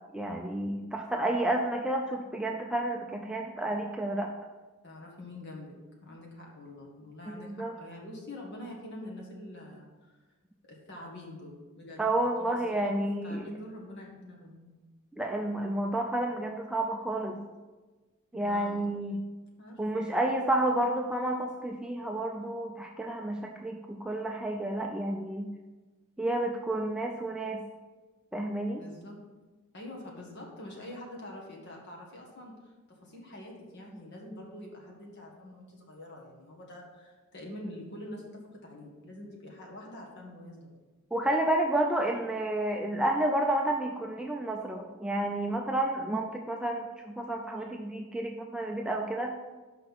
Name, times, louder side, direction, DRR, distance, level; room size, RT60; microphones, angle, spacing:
voice 1, 0.1-4.3 7.4-7.8 12.0-13.4 15.2-17.4 18.3-19.2 19.8-25.5 26.2-27.6 28.3-28.8 41.1-49.3, right 1 dB, 5° right, 1 dB, 0.4 m, -30 dB
voice 2, 4.8-5.7 6.0-10.2 10.7-12.1 12.4-12.6 12.8-14.7 18.4-18.9 19.6-19.8 28.8-29.2 29.7-40.8, left 1 dB, 50° left, -2 dB, 1.7 m, -45 dB
5.8 x 5.5 x 5.9 m, 1.2 s
head